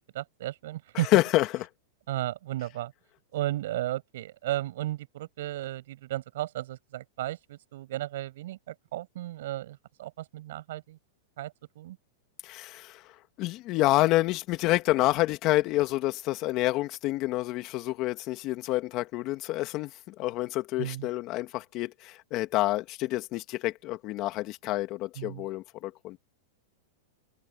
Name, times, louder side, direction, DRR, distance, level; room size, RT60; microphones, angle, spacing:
voice 1, 0.1-1.1 2.1-2.9 3.3-11.0 11.4-12.0 20.8-21.1 25.2-25.4, right 15 dB, 70° right, 7.0 m, -34 dB
voice 2, 0.9-1.7 12.4-26.2, left 17 dB, 40° left, 1.9 m, -28 dB
hypercardioid pair, 135°, 0 cm